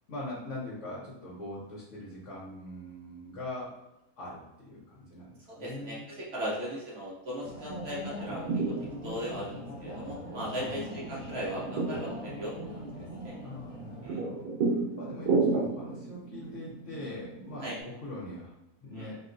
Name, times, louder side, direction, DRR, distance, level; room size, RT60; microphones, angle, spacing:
voice 1, 0.1-3.7 4.2-6.0 10.5-10.8 13.4-19.2, left 1 dB, 60° left, -7 dB, 1.0 m, -42 dB
voice 2, 5.5-8.5 9.0-13.3 14.0-14.2 17.6-17.8 18.9-19.1, equal, 50° right, -5 dB, 0.9 m, -38 dB
sound 1, 7.4-14.1, equal, 5° left, 0.6 m, -42 dB
sound 2, 8.0-17.8, right 3 dB, 80° right, 1.3 m, -34 dB
3.6 x 2.2 x 2.5 m, 0.91 s
omnidirectional pair, 1.6 m